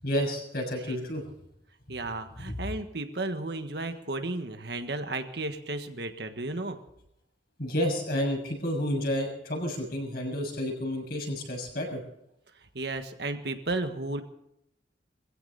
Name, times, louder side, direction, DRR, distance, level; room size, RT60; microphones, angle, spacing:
voice 1, 0.0-1.2 2.5-2.6 7.6-12.0, equal, 55° left, 1 dB, 6.6 m, -30 dB
voice 2, 1.9-6.8 12.7-14.2, right 2 dB, 60° right, 7 dB, 1.6 m, -33 dB
21.5 x 16.0 x 4.2 m, 0.78 s
head